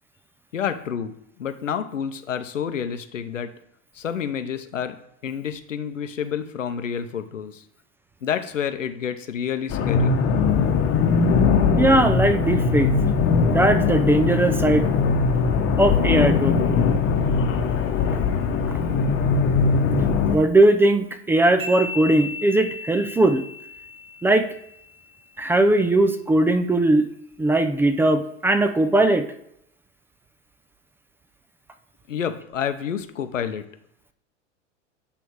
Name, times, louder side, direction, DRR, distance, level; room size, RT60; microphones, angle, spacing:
voice 1, 0.5-3.5 3.9-5.0 5.2-7.6 8.2-10.1 32.1-33.6, left 8 dB, 90° left, 9 dB, 0.8 m, -29 dB
sound 1, 9.7-20.4, left 5 dB, 35° left, 1.0 m, -20 dB
voice 2, 11.8-12.9 13.5-14.9 15.8-16.6 20.3-23.4 24.2-24.5 25.4-27.1 27.4-29.3, right 2 dB, 5° right, 9 dB, 0.3 m, -19 dB
sound 2, 21.6-25.1, left 3 dB, 35° right, 2.8 m, -36 dB
8.3 x 3.4 x 4.6 m, 0.73 s
hypercardioid pair, 95°, 37 cm